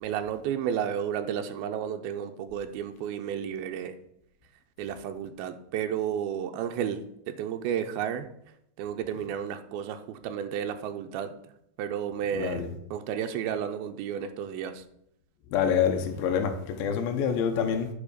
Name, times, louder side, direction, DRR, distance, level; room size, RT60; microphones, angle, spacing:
voice 1, 0.0-4.0 4.8-8.3 8.8-11.3 11.8-12.6 12.9-14.8, right 9 dB, 90° right, 2.6 m, -32 dB
voice 2, 12.4-12.7 15.5-17.9, left 7 dB, 80° left, 2.7 m, -26 dB
8.8 x 5.4 x 6.6 m
omnidirectional pair, 4.3 m